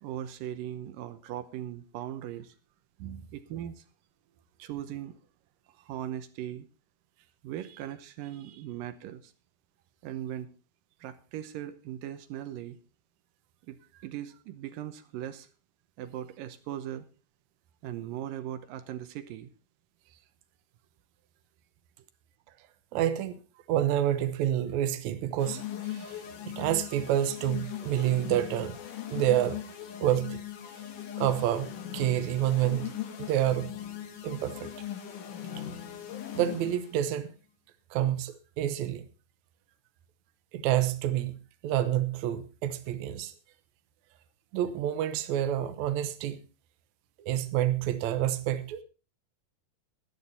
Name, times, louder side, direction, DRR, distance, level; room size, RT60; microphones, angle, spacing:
voice 1, 0.0-2.5 3.3-3.8 4.6-5.2 5.8-6.7 7.4-9.3 10.0-10.5 11.0-12.8 13.7-15.5 16.0-17.1 17.8-19.5, right 11 dB, 90° right, 10 dB, 2.6 m, -39 dB
voice 2, 22.9-23.4 23.7-26.2 26.5-28.8 29.1-29.6 30.0-30.4 31.2-32.9 33.2-33.7 34.2-34.7 35.6-35.7 36.3-37.3 37.9-39.1 40.5-41.4 41.6-43.3 44.5-46.4 47.2-48.8, right 12 dB, 70° right, 10 dB, 2.1 m, -28 dB
sound 1, 25.4-37.0, left 10 dB, 70° left, 3.0 m, -39 dB
13.5 x 11.0 x 4.2 m, 0.34 s
omnidirectional pair, 3.9 m